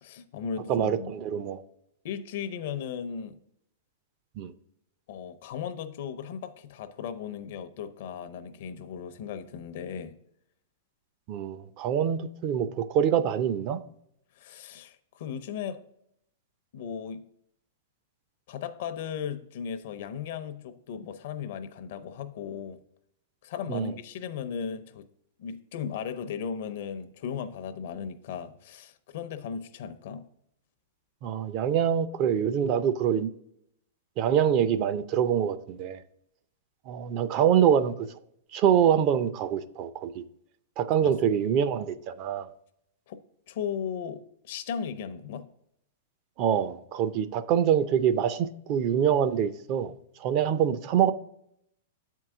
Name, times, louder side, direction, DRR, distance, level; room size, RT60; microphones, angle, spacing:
voice 1, 0.0-1.1 2.0-3.4 5.1-10.1 14.4-15.8 16.7-17.3 18.5-22.8 23.4-25.0 25.4-30.3 41.0-41.1 43.1-43.2 43.5-45.5, left 7 dB, 60° left, 0.6 m, -36 dB
voice 2, 0.7-1.6 4.4-4.5 11.3-13.8 23.7-23.9 31.2-33.3 34.2-36.0 36.9-38.1 38.5-40.2 40.8-42.5 46.4-49.9 50.2-51.1, right 9 dB, 40° right, 0.5 m, -25 dB
7.4 x 4.6 x 3.6 m
hypercardioid pair, 140°, 0 cm